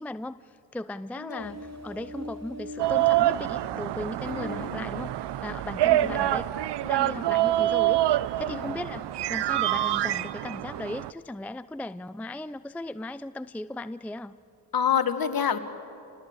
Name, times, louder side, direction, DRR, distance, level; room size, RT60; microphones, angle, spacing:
voice 1, 0.0-14.3, left 1 dB, 5° left, 14 dB, 0.5 m, -37 dB
voice 2, 1.2-1.5 4.3-4.9 5.9-6.3 8.5-8.7 14.7-15.6, left 8 dB, 50° left, 10 dB, 1.8 m, -28 dB
Ocean, 1.4-9.9, equal, 35° right, 3.4 m, -47 dB
sound 1, 2.8-11.1, right 14 dB, 65° right, 0.7 m, -26 dB
28.5 x 19.0 x 8.1 m, 2.7 s
supercardioid pair, 55°, 45 cm